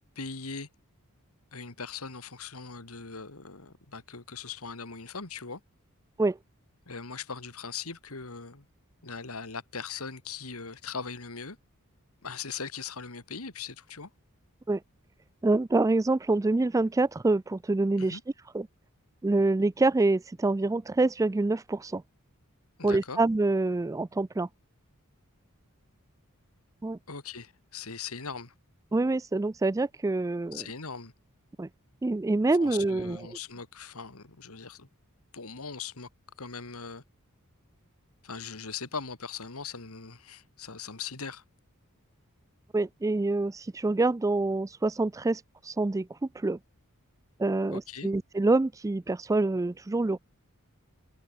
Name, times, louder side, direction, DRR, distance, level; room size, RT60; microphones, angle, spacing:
voice 1, 0.2-0.7 1.5-5.6 6.9-8.7 9.0-11.6 12.2-14.1 18.0-18.2 22.8-23.2 27.1-28.5 30.5-31.1 32.6-34.9 35.3-36.1 36.4-37.0 38.2-41.4 47.7-48.1, left 5 dB, 70° left, 2.4 m, -40 dB
voice 2, 15.4-18.2 18.5-18.7 19.2-22.0 22.8-24.5 26.8-27.0 28.9-30.6 31.6-31.7 32.0-33.3 42.7-46.1 46.4-46.6 47.4-50.2, right 2 dB, 15° right, 0.3 m, -26 dB
head